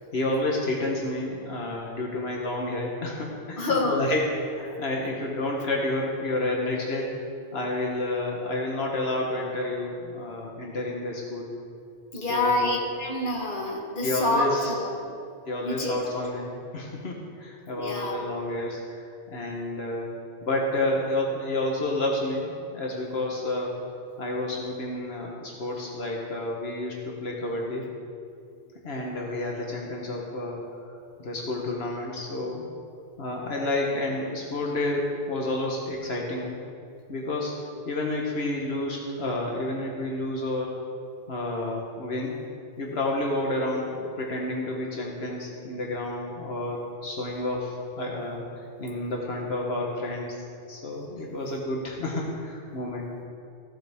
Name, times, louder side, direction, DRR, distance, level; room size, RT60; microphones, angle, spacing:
voice 1, 0.1-7.1 7.5-11.5 12.1-12.8 14.0-14.7 15.4-19.0 19.3-20.1 20.4-23.7 24.2-27.8 28.8-30.9 31.2-32.7 33.2-36.6 37.1-37.5 37.8-40.8 41.3-42.4 42.8-48.5 48.8-50.4 50.7-53.1, left 2 dB, 80° left, -1 dB, 1.5 m, -30 dB
voice 2, 3.6-4.0 12.1-15.0 15.6-16.0 17.8-18.2 25.7-25.8, left 2 dB, 55° left, -2 dB, 1.6 m, -27 dB
15.5 x 7.6 x 3.6 m, 2.4 s
omnidirectional pair, 1.1 m